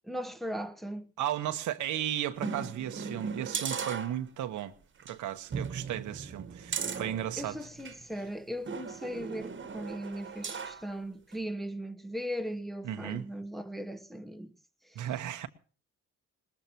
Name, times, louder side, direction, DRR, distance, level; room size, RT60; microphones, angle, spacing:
voice 1, 0.0-1.1 7.4-14.5 14.9-15.1, equal, ahead, 1.1 m, -38 dB
voice 2, 1.2-4.7 5.0-7.6 12.8-13.3 14.9-15.5, right 11 dB, 80° right, 1.2 m, -35 dB
sound 1, 2.4-4.6 5.0-5.1 5.5-8.0 8.7-10.9 11.3-11.4, right 5 dB, 40° right, 1.5 m, -38 dB
21.0 x 20.0 x 3.1 m
cardioid pair, 90°, 30 cm